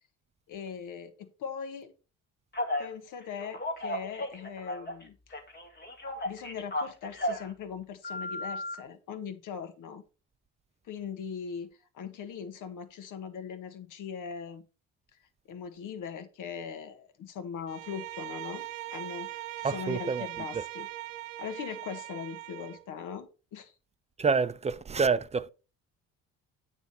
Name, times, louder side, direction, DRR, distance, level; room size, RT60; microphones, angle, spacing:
voice 1, 0.5-1.9 2.8-5.2 6.2-10.0 10.8-14.6 15.5-18.7 18.9-20.9 21.4-23.7, left 7 dB, 65° left, 1.4 m, -40 dB
Telephone, 2.5-2.9 3.4-5.0 5.3-7.5 8.0-8.7, left 1 dB, 30° left, 2.0 m, -34 dB
Bowed string instrument, 17.7-22.9, right 16 dB, 85° right, 0.7 m, -40 dB
voice 2, 19.6-20.3 20.5-20.6 24.2-25.5, right 5 dB, 20° right, 0.5 m, -27 dB
9.1 x 3.5 x 5.6 m
supercardioid pair, 80°, 33 cm